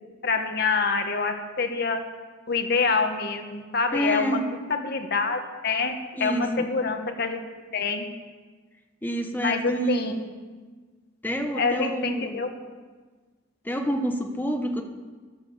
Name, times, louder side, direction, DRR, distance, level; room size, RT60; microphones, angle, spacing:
voice 1, 0.2-2.0 2.5-4.4 4.7-7.4 7.7-8.0 9.4-10.1 11.5-12.5, left 4 dB, 55° left, 5 dB, 1.3 m, -26 dB
voice 2, 3.9-4.4 6.1-6.7 9.0-10.3 11.2-12.4 13.6-14.8, equal, 10° left, 4 dB, 1.2 m, -28 dB
13.0 x 10.5 x 7.2 m, 1.4 s
head